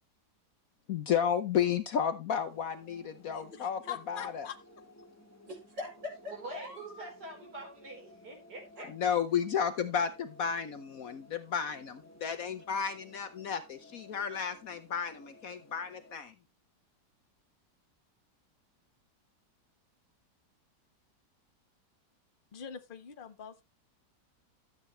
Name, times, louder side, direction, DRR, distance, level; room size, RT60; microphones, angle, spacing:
voice 1, 0.9-3.8 4.1-4.5 8.9-16.3, left 7 dB, 60° left, 1.1 m, -32 dB
sound 1, 2.3-16.2, left 1 dB, 10° left, 1.5 m, -57 dB
voice 2, 3.3-4.6 22.5-23.6, left 8 dB, 35° left, 1.0 m, -44 dB
voice 3, 5.5-7.1 8.8-8.9, left 2 dB, 80° right, 5.7 m, -42 dB
voice 4, 6.3-8.9, right 2 dB, 60° right, 4.8 m, -45 dB
12.5 x 8.1 x 3.1 m
omnidirectional pair, 1.9 m